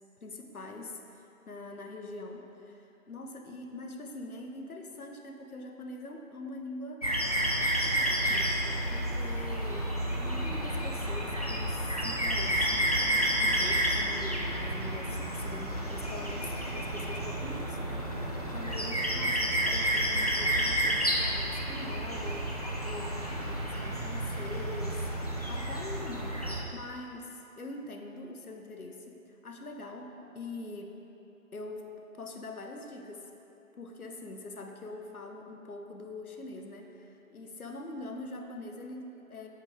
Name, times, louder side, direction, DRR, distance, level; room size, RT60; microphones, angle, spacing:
voice 1, 0.2-7.0 7.9-31.0 31.5-33.3 33.8-39.5, left 2 dB, 80° left, 3 dB, 1.0 m, -44 dB
sound 1, 7.0-26.6, right 1 dB, 30° left, 0.5 m, -30 dB
8.2 x 4.8 x 4.9 m, 2.8 s
figure-of-eight pair, 145°, 43 cm